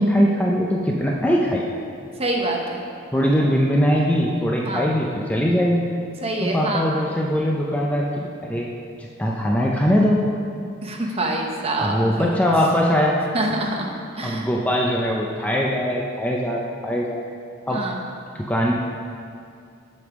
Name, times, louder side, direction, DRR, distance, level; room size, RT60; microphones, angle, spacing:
voice 1, 0.0-1.6 3.1-5.8 6.4-8.7 9.0-10.2 11.1-11.2 11.8-13.2 14.2-17.2 17.7-17.8 18.3-18.7, equal, 5° left, -2 dB, 0.5 m, -21 dB
voice 2, 2.2-2.8 4.6-4.9 6.2-6.9 10.8-12.4 13.3-14.4 17.7-18.0, right 2 dB, 30° right, 0 dB, 0.9 m, -26 dB
8.0 x 5.3 x 6.0 m, 2.4 s
head